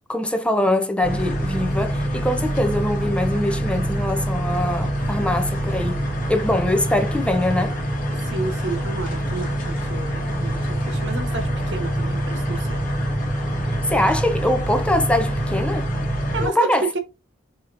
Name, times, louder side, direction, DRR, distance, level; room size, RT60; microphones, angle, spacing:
voice 1, 0.1-6.0 6.3-7.8 13.6-15.9 16.4-16.9, left 1 dB, 5° left, 0.6 m, -23 dB
sound 1, 1.0-16.5, right 1 dB, 45° left, 1.2 m, -25 dB
voice 2, 8.2-9.6 9.9-12.8 16.3-16.7, right 3 dB, 65° right, 1.1 m, -31 dB
4.6 x 2.9 x 2.5 m
head